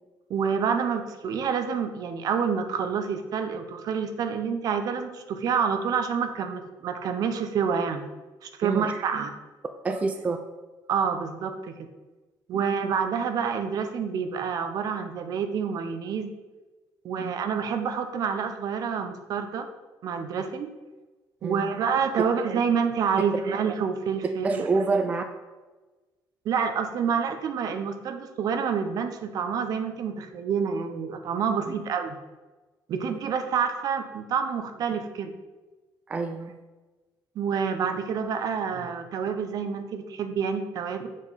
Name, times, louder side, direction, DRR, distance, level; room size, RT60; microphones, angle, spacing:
voice 1, 0.3-8.1 8.4-9.3 10.9-11.9 12.5-16.3 17.0-19.7 20.0-20.7 21.4-24.7 26.4-32.2 32.9-35.3 37.4-41.1, right 6 dB, 55° right, 7 dB, 0.7 m, -28 dB
voice 2, 9.8-10.4 12.5-12.6 17.2-17.3 21.4-21.7 24.4-25.2 33.0-33.1 36.1-36.5, right 3 dB, 20° right, 6 dB, 0.4 m, -27 dB
7.4 x 5.0 x 4.1 m, 1.2 s
cardioid pair, 155°, 8 cm